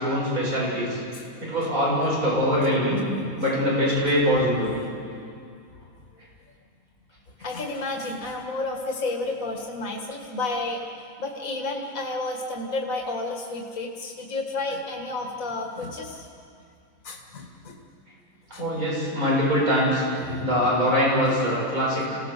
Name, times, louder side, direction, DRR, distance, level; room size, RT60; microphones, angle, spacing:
voice 1, 0.0-1.0 1.4-3.0 3.4-4.7 18.6-22.2, equal, 90° right, -6 dB, 8.5 m, -23 dB
voice 2, 7.4-10.8 11.2-16.3 17.0-17.8 18.5-18.6, left 2 dB, 70° left, 1 dB, 2.2 m, -31 dB
28.0 x 18.0 x 6.7 m, 2.4 s
omnidirectional pair, 1.5 m